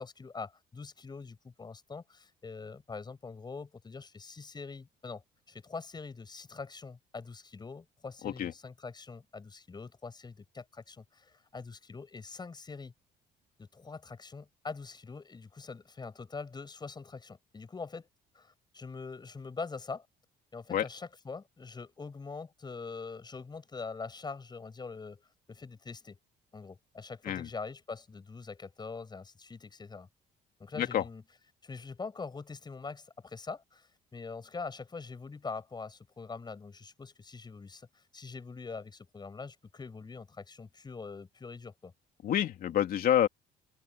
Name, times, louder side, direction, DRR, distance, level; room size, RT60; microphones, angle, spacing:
voice 1, 0.0-5.2 5.5-12.9 13.6-18.1 18.3-20.1 20.5-26.2 26.5-30.1 30.6-31.2 31.6-41.9, left 4 dB, 25° left, 7.3 m, -43 dB
voice 2, 42.2-43.3, left 10 dB, 60° left, 3.0 m, -28 dB
open air
cardioid pair, 110°, 17 cm